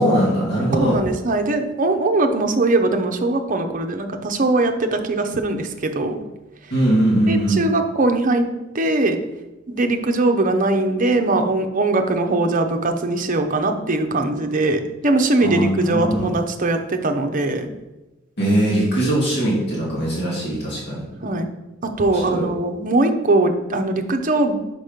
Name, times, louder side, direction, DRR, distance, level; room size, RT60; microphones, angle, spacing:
voice 1, 0.0-1.0 6.7-7.6 15.4-16.3 18.4-21.0 22.1-22.5, right 1 dB, 55° left, -6 dB, 2.6 m, -20 dB
voice 2, 0.8-6.2 7.3-8.4 8.7-9.2 9.7-17.7 21.2-21.5 21.8-24.6, right 2 dB, 40° right, 5 dB, 0.7 m, -20 dB
6.1 x 5.3 x 5.1 m, 1.1 s
head